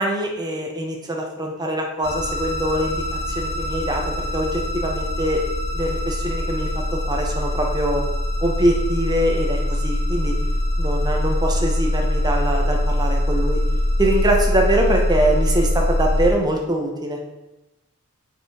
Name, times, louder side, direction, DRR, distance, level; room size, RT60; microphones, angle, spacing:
voice 1, 0.0-5.4 5.7-8.0 8.4-10.3 10.8-13.6 14.0-17.2, right 1 dB, 20° right, 1 dB, 1.2 m, -23 dB
sound 1, 2.0-16.3, left 1 dB, 45° left, 1.4 m, -23 dB
7.1 x 5.1 x 5.1 m, 0.97 s
head